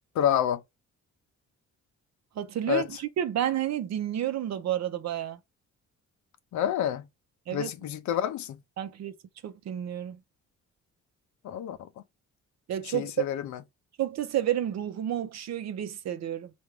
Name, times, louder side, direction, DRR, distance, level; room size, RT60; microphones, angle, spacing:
voice 1, 0.2-0.6 2.7-2.9 6.5-7.0 7.5-8.6 11.4-11.8 12.9-13.6, left 10 dB, 70° left, 0.6 m, -28 dB
voice 2, 2.4-5.4 7.5-7.7 8.8-9.1 9.4-10.2 12.7-13.2 14.0-16.5, right 11 dB, 60° right, 0.7 m, -30 dB
4.6 x 2.6 x 3.3 m
cardioid pair, 90°, 30 cm